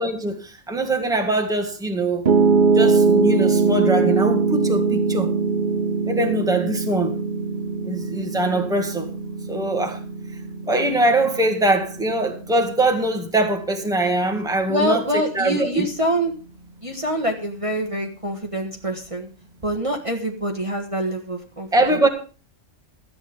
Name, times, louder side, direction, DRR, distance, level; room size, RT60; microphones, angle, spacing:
voice 1, 0.0-2.2 2.7-5.3 6.1-7.1 7.8-9.1 9.5-10.0 10.6-15.9 21.7-22.1, right 2 dB, 5° right, 1.6 m, -22 dB
Piano, 2.3-14.4, right 4 dB, 40° right, 0.9 m, -22 dB
voice 2, 14.7-16.3 16.8-19.3 19.6-22.1, equal, 25° right, 1.5 m, -25 dB
13.5 x 8.9 x 5.2 m
omnidirectional pair, 1.4 m